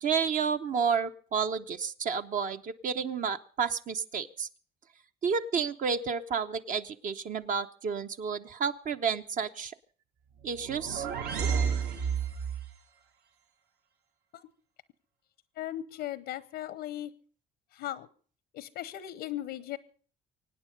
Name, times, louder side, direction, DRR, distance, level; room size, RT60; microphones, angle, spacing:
voice 1, 0.0-4.5 5.2-9.7 10.4-11.1, right 6 dB, 50° right, 8 dB, 0.9 m, -31 dB
sound 1, 10.4-12.7, right 6 dB, 70° right, 1.8 m, -31 dB
voice 2, 15.6-17.1 17.7-18.1 18.5-19.8, left 13 dB, 85° left, 16 dB, 0.9 m, -37 dB
24.5 x 9.2 x 5.2 m, 0.43 s
cardioid pair, 110°, 17 cm